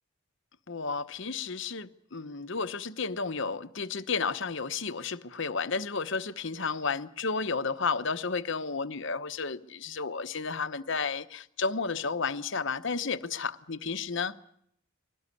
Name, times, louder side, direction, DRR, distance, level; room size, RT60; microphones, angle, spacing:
voice 1, 0.7-14.4, left 4 dB, 55° left, 0.9 m, -32 dB
22.5 x 18.0 x 9.8 m
head